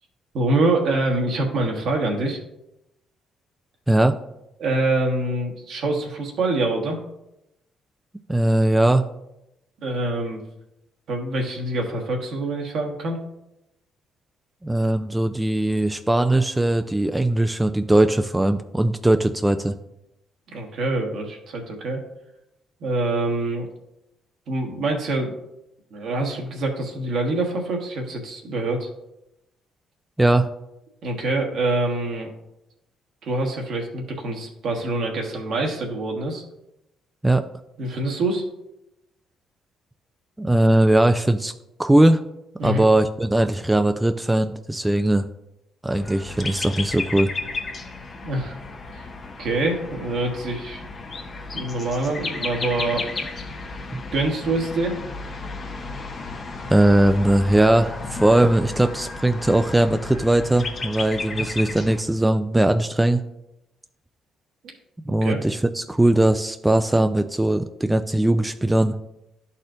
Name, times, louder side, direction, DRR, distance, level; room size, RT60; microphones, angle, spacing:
voice 1, 0.3-2.4 4.6-7.0 9.8-10.4 11.1-13.2 20.5-22.0 22.8-23.7 24.5-25.3 25.9-28.9 31.0-32.3 33.2-36.4 37.8-38.4 42.6-42.8 48.2-48.5 48.9-49.1 49.4-50.8 51.5-53.0 54.1-55.0 61.3-61.5 65.1-65.4, right 2 dB, 70° right, 1 dB, 1.4 m, -25 dB
voice 2, 3.9-4.2 8.3-9.1 14.6-19.7 30.2-30.5 37.2-37.4 40.4-41.5 41.8-42.2 42.6-45.3 45.8-47.3 53.9-54.0 56.7-63.2 65.1-69.0, right 1 dB, 10° right, 8 dB, 0.4 m, -19 dB
sound 1, 45.9-62.0, left 3 dB, 45° left, 1.0 m, -33 dB
11.5 x 4.2 x 2.6 m, 0.87 s
supercardioid pair, 65°, 0 cm